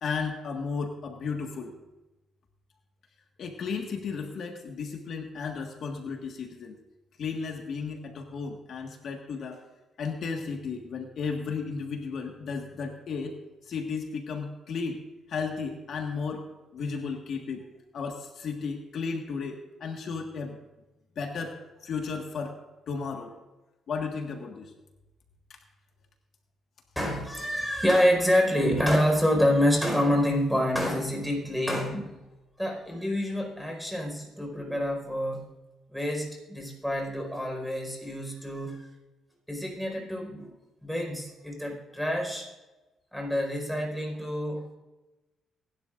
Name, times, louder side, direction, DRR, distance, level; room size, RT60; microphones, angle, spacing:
voice 1, 0.0-1.7 3.4-6.7 7.2-9.6 10.0-13.3 13.6-15.0 15.3-16.5 16.7-17.6 17.9-20.6 21.1-22.6 22.9-23.3 23.9-24.7 25.5-25.6, left 5 dB, 65° left, 2 dB, 1.6 m, -34 dB
voice 2, 26.9-32.2 32.6-35.5 35.9-38.9 39.5-40.6 40.8-42.5 43.1-44.8, equal, ahead, 1 dB, 4.7 m, -27 dB
23.5 x 11.5 x 2.6 m, 1.1 s
cardioid pair, 90°, 0 cm